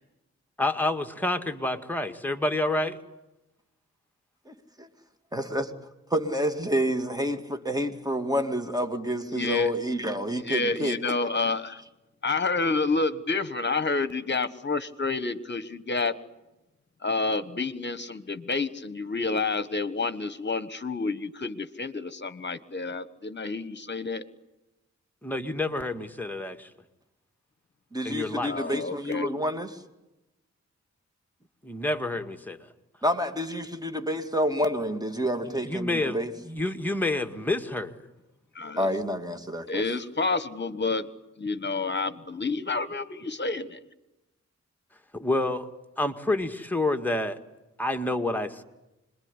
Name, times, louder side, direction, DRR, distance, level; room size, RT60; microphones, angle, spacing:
voice 1, 0.6-3.0 25.2-26.7 28.0-28.5 31.6-32.7 35.5-36.2 36.4-38.0 45.1-45.7 46.0-47.4 47.8-48.6, left 2 dB, 5° left, 5 dB, 1.9 m, -28 dB
voice 2, 4.5-4.9 5.3-5.7 6.1-11.1 27.9-29.7 33.0-36.3 38.8-39.8, equal, 15° right, 7 dB, 2.4 m, -29 dB
voice 3, 9.3-9.7 10.4-11.8 12.2-16.2 17.0-24.2 28.5-29.3 38.5-38.9 39.7-41.1 41.4-43.8, left 3 dB, 40° left, 14 dB, 1.4 m, -29 dB
26.5 x 22.0 x 9.9 m, 0.99 s
wide cardioid pair, 95°, 29 cm